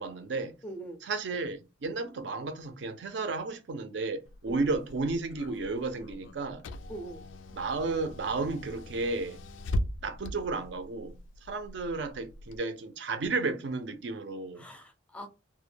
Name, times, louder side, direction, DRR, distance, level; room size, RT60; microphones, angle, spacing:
voice 1, 0.0-0.5 1.0-6.6 7.5-9.4 10.0-11.2 11.4-14.7, right 3 dB, 70° right, 0.5 m, -33 dB
voice 2, 0.6-1.0 4.5-4.6 6.9-7.3 14.6-15.3, right 1 dB, 5° left, 0.4 m, -42 dB
Car / Engine, 4.2-12.6, left 1 dB, 85° left, 0.3 m, -40 dB
2.1 x 2.0 x 3.2 m
head